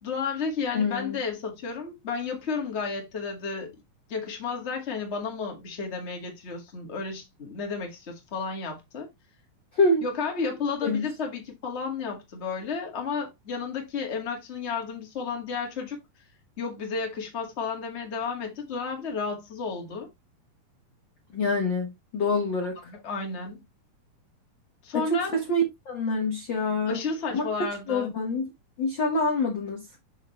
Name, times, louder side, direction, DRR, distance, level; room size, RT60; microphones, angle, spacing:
voice 1, 0.0-3.8 4.1-9.1 10.0-16.0 16.6-20.1 22.9-23.6 24.8-25.3 26.9-28.1, left 5 dB, 30° left, 1.2 m, -32 dB
voice 2, 0.7-1.2 9.7-10.0 10.8-11.1 21.3-22.8 24.9-27.0 27.3-27.5 27.9-28.5 28.8-29.9, left 2 dB, 55° left, 1.2 m, -26 dB
6.5 x 6.4 x 3.1 m
omnidirectional pair, 4.4 m